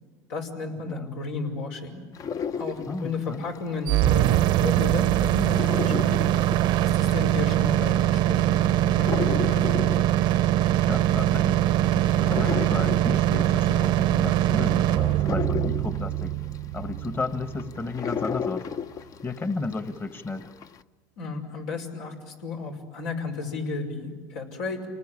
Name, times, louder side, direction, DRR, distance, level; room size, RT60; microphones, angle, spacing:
voice 1, 0.3-2.0 2.6-6.1 6.8-9.7 21.2-24.9, left 4 dB, 85° left, 2 dB, 5.7 m, -33 dB
sound 1, 2.1-4.4 4.7-19.9 20.3-20.8, left 7 dB, 40° left, 0.8 m, -34 dB
voice 2, 2.9-3.5 10.8-16.4 16.7-18.7 18.9-20.5, left 3 dB, 25° left, 9 dB, 1.4 m, -33 dB
sound 2, 3.9-17.8, right 13 dB, 60° right, 0.7 m, -22 dB
28.5 x 20.0 x 9.9 m, 1.5 s
supercardioid pair, 105°, 9 cm